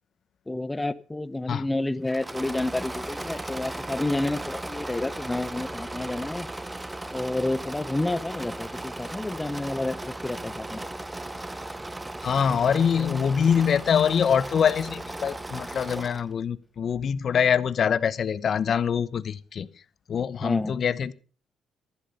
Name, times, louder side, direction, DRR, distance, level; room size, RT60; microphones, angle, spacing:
voice 1, 0.5-6.5 7.1-10.8 20.4-20.8, left 2 dB, 15° left, 16 dB, 0.9 m, -30 dB
Engine / Mechanisms, 2.0-16.3, right 2 dB, 15° right, 0.7 m, -36 dB
voice 2, 12.2-19.7 20.1-21.1, left 7 dB, 55° left, 17 dB, 0.8 m, -24 dB
13.5 x 11.5 x 5.5 m, 0.39 s
cardioid pair, 90°, 0 cm